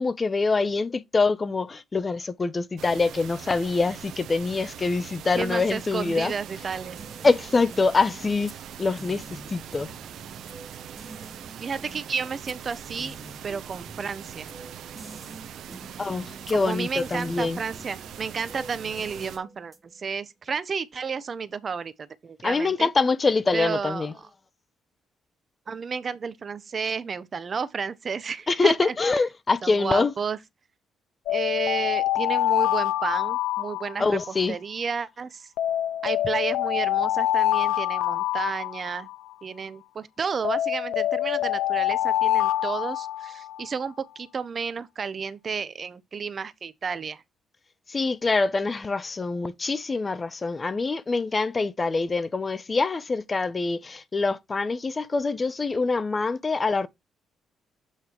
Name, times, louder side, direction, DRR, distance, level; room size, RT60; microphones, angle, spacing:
voice 1, 0.0-6.3 7.2-8.5 8.8-9.2 9.5-9.9 16.0-17.6 22.4-24.1 28.5-30.1 34.0-34.6 47.9-56.9, left 3 dB, 30° left, 0.7 m, -25 dB
sound 1, 2.8-19.4, right 9 dB, 75° right, 0.9 m, -42 dB
voice 2, 5.3-7.0 11.6-13.2 13.4-14.5 16.5-21.9 22.2-22.9 23.5-24.1 25.7-28.9 29.6-30.4 31.3-35.5 36.0-39.1 39.4-47.2, right 5 dB, 40° right, 0.8 m, -32 dB
sound 2, 6.6-20.1, right 2 dB, 15° right, 1.3 m, -47 dB
sound 3, 31.3-34.4 35.6-39.3 40.4-43.7, left 13 dB, 90° left, 0.4 m, -25 dB
8.2 x 3.4 x 4.4 m
cardioid pair, 90°, 0 cm